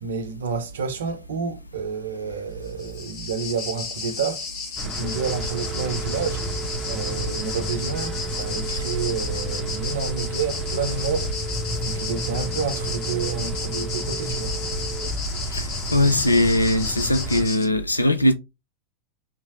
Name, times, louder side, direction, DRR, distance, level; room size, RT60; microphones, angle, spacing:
voice 1, 0.0-4.5 4.8-6.4 6.8-11.3 11.8-14.6, right 6 dB, 65° right, 0.6 m, -29 dB
sound 1, 2.6-17.7, left 5 dB, 45° left, 1.2 m, -34 dB
sound 2, 4.8-17.5, right 1 dB, 10° right, 0.8 m, -31 dB
sound 3, 5.0-15.0, right 9 dB, 25° left, 1.3 m, -37 dB
voice 2, 15.5-18.3, left 1 dB, 85° left, 0.4 m, -20 dB
4.5 x 2.9 x 2.6 m
figure-of-eight pair, 90°, 0 cm